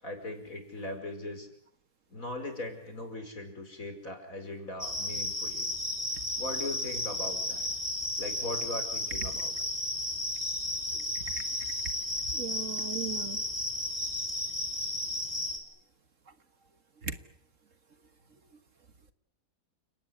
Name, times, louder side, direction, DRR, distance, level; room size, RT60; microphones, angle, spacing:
voice 1, 0.0-1.5 2.1-5.7 6.4-7.7 8.2-9.5, left 1 dB, 55° left, 6 dB, 5.7 m, -39 dB
sound 1, 4.8-15.6, left 1 dB, 25° right, 4.6 m, -33 dB
voice 2, 12.3-13.4 17.0-17.1, right 6 dB, 55° right, 10 dB, 1.8 m, -37 dB
29.5 x 18.5 x 9.8 m, 0.66 s
omnidirectional pair, 1.7 m